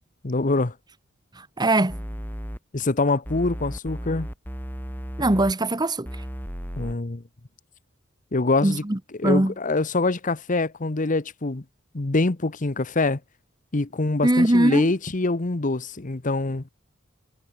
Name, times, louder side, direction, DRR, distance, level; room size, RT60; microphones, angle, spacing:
voice 1, 0.2-0.7 2.7-4.3 6.8-7.2 8.3-8.8 9.2-11.6 11.9-13.2 13.7-16.6, left 2 dB, 40° left, 1.0 m, -24 dB
voice 2, 1.4-2.0 5.2-6.1 8.6-9.5 14.2-14.9, right 1 dB, 20° right, 1.1 m, -21 dB
sound 1, 1.9-2.6 3.3-5.5 6.1-6.9, equal, 10° left, 3.8 m, -34 dB
head